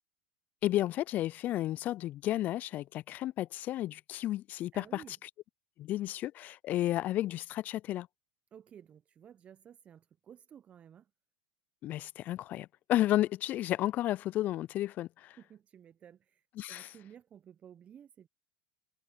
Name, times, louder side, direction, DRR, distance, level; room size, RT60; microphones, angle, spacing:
voice 1, 0.6-5.0 5.8-8.1 11.8-15.4 16.6-16.9, left 14 dB, 40° left, 0.3 m, -32 dB
voice 2, 4.7-5.2 8.5-11.1 15.4-18.3, right 9 dB, 30° right, 0.7 m, -54 dB
hypercardioid pair, 95°, 4 cm